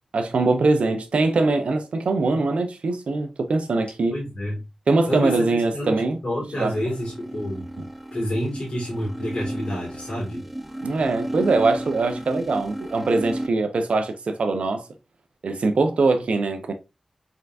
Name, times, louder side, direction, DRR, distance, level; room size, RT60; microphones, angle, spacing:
voice 1, 0.1-4.2 4.9-6.2 6.6-6.9 7.8-7.9 10.8-14.8 15.4-16.7, right 3 dB, 80° right, 0.7 m, -22 dB
voice 2, 4.1-4.6 5.1-7.8 8.1-10.4, equal, 60° left, 2.0 m, -29 dB
sound 1, 6.4-13.5, right 1 dB, 5° right, 0.6 m, -34 dB
3.8 x 3.5 x 2.5 m
cardioid pair, 45°, 2 cm